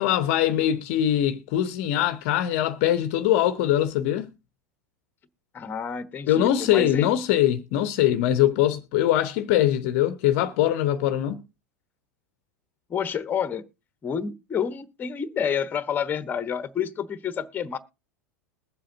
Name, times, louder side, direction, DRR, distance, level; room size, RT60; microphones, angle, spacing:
voice 1, 0.0-4.3 6.3-11.4, left 12 dB, 50° left, 0.7 m, -22 dB
voice 2, 5.5-7.1 12.9-13.6 14.0-17.8, left 7 dB, 20° left, 1.0 m, -29 dB
21.0 x 7.5 x 2.6 m
figure-of-eight pair, 85°, 8 cm